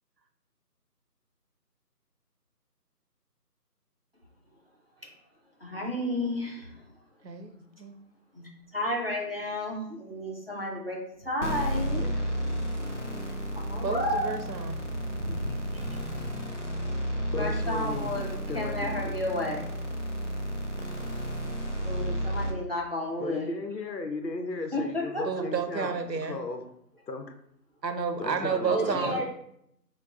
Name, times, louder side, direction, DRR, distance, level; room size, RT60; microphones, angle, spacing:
voice 1, 5.6-6.8 8.3-12.3 13.5-14.3 14.8-16.3 17.4-19.7 21.8-23.5 24.7-25.4 28.7-29.2, left 1 dB, 35° right, -2 dB, 0.7 m, -32 dB
voice 2, 7.2-7.5 7.8-7.9 13.8-14.8 25.2-26.4 27.8-29.2, right 6 dB, 80° right, 7 dB, 0.8 m, -31 dB
sound 1, 11.4-22.5, equal, 50° left, 0.5 m, -32 dB
voice 3, 17.3-18.2 18.5-19.1 23.2-26.0 26.3-26.6 27.1-27.3 28.2-29.2, left 3 dB, 85° left, 5 dB, 0.8 m, -35 dB
6.4 x 2.3 x 2.4 m, 0.74 s
figure-of-eight pair, 175°, 49 cm